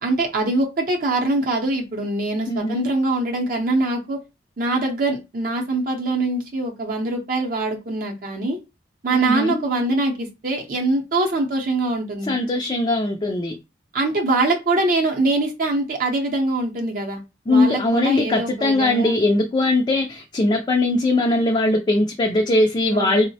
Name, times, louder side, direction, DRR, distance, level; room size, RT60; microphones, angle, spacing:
voice 1, 0.0-4.2 4.6-8.6 9.0-12.3 13.9-17.2 17.5-19.2 22.9-23.3, right 2 dB, 50° right, 0.6 m, -23 dB
voice 2, 2.5-2.9 9.1-9.6 12.3-13.5 17.5-23.2, left 2 dB, 25° left, 0.3 m, -20 dB
3.7 x 2.0 x 2.7 m
head